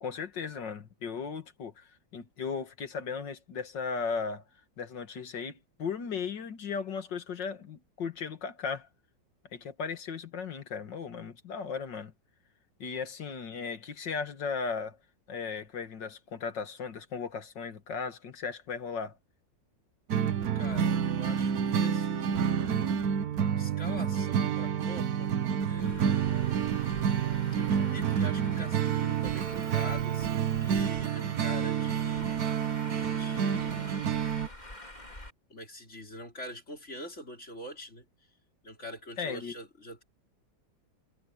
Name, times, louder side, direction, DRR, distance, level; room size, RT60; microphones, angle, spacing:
voice 1, 0.0-4.4 4.8-8.9 9.5-12.1 12.8-15.0 15.3-19.2 39.2-39.5, left 5 dB, 75° left, 2.4 m, -36 dB
sound 1, 20.1-34.5, right 8 dB, 60° right, 1.3 m, -29 dB
voice 2, 20.3-23.0 23.6-25.3 25.7-26.3 27.5-32.3 33.1-33.9 35.5-38.1 38.6-40.0, left 1 dB, 40° left, 5.6 m, -44 dB
Traffic noise roadway noise, 25.8-35.3, left 1 dB, 20° left, 4.2 m, -47 dB
omnidirectional pair, 2.0 m